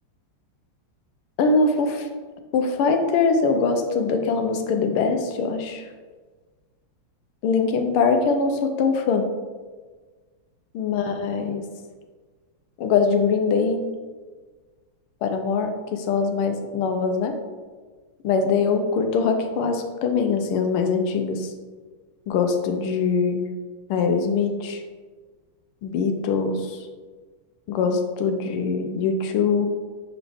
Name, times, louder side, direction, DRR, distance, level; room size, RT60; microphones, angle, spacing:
voice 1, 1.4-2.1 2.5-5.9 7.4-9.3 10.7-11.6 12.8-13.9 15.2-17.4 18.2-21.5 22.3-23.5 23.9-24.8 25.8-26.8 27.7-29.7, left 5 dB, 80° left, 5 dB, 1.6 m, -22 dB
5.8 x 4.9 x 3.5 m, 1.4 s
omnidirectional pair, 2.4 m